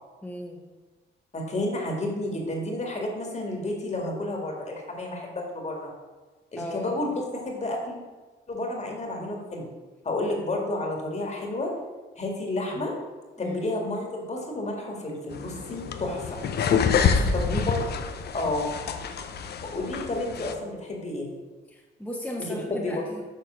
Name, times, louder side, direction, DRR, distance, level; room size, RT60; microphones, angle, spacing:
voice 1, 0.2-0.6 6.6-6.9 13.4-13.7 17.0-17.8 20.4-20.7 21.7-23.2, left 1 dB, 5° left, -4 dB, 1.3 m, -36 dB
voice 2, 1.3-5.9 6.5-8.0 8.5-9.7 10.0-11.7 12.2-12.9 13.4-16.4 17.3-17.8 18.3-18.7 19.6-21.3 22.5-22.9, left 2 dB, 35° left, 0 dB, 2.0 m, -31 dB
sound 1, 15.3-20.5, left 6 dB, 55° left, 0.7 m, -27 dB
7.1 x 3.8 x 6.3 m, 1.3 s
cardioid pair, 90°, 20 cm